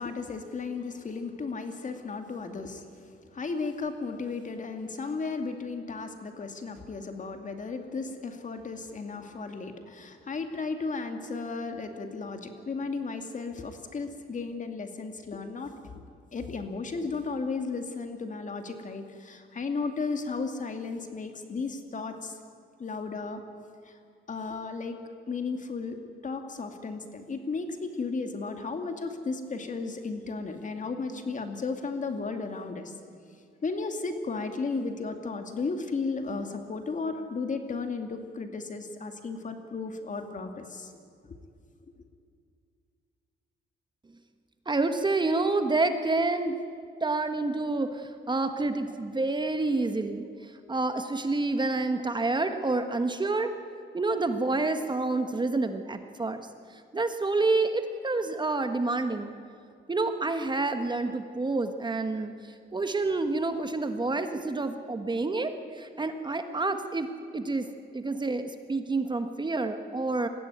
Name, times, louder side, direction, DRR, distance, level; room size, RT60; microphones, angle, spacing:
voice 1, 0.0-2.8 3.3-16.0 16.3-22.4 22.8-23.4 23.9-24.0 24.3-25.0 25.3-26.0 26.2-32.9 33.6-40.9 41.2-41.4, left 4 dB, 40° left, 6 dB, 2.3 m, -34 dB
voice 2, 44.6-46.6 47.0-53.5 53.9-59.3 59.9-67.1 67.3-70.3, right 3 dB, 20° right, 8 dB, 1.4 m, -28 dB
21.0 x 15.5 x 9.5 m, 2.3 s
cardioid pair, 90°, 20 cm